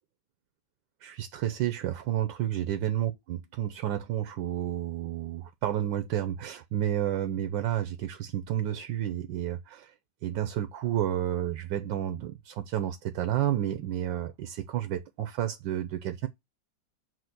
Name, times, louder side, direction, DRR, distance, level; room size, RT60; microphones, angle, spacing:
voice 1, 1.0-9.9 10.2-16.3, right 11 dB, 80° right, 1.4 m, -31 dB
7.8 x 2.8 x 5.8 m
omnidirectional pair, 2.0 m